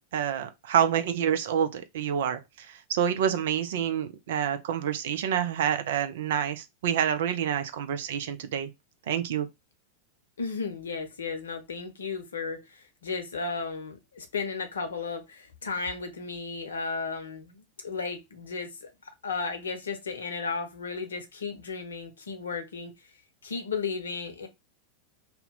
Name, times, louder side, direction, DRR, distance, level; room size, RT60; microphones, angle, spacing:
voice 1, 0.1-8.7 9.1-9.5, right 9 dB, 55° right, 0.4 m, -28 dB
voice 2, 10.4-22.9 23.4-24.5, left 4 dB, 70° left, 0.7 m, -34 dB
2.8 x 2.1 x 3.9 m
figure-of-eight pair, 90°, 0 cm